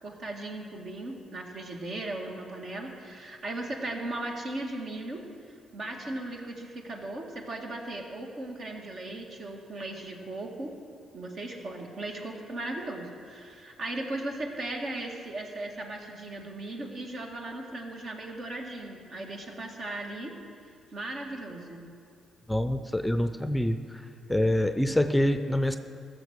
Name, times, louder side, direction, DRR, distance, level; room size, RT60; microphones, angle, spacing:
voice 1, 0.0-10.7 11.1-20.3 20.9-21.9, right 2 dB, 60° right, 1 dB, 1.9 m, -37 dB
voice 2, 22.5-24.0 24.3-25.8, left 1 dB, 5° left, 9 dB, 0.6 m, -26 dB
15.0 x 6.6 x 6.5 m, 2.3 s
supercardioid pair, 50°, 0 cm